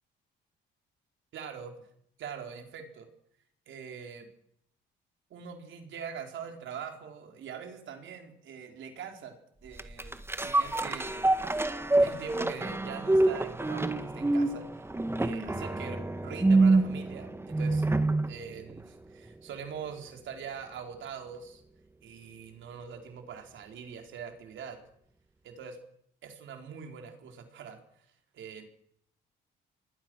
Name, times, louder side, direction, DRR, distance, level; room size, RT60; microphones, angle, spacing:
voice 1, 1.3-1.7 2.2-3.1 3.7-4.3 5.3-9.3 9.6-11.2 12.0-14.9 15.2-17.9 18.3-21.6 22.0-24.8 25.4-25.8 26.2-28.1 28.3-28.6, right 7 dB, 75° right, 4 dB, 4.4 m, -43 dB
sound 1, 9.8-18.4 18.8-18.9, right 2 dB, 10° right, 1.6 m, -26 dB
27.0 x 20.5 x 6.4 m, 0.72 s
cardioid pair, 90°, 20 cm